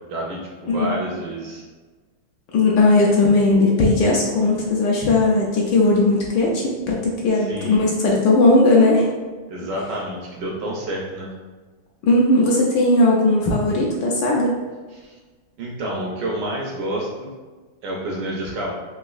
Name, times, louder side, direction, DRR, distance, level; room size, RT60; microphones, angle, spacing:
voice 1, 0.1-1.6 7.3-7.8 9.5-11.3 14.9-15.1 15.6-17.3 17.8-18.7, right 1 dB, 75° right, -2 dB, 1.0 m, -29 dB
voice 2, 0.7-1.0 2.5-9.1 12.0-14.5, left 2 dB, 75° left, -3 dB, 1.0 m, -17 dB
3.9 x 2.5 x 2.3 m, 1.3 s
omnidirectional pair, 2.3 m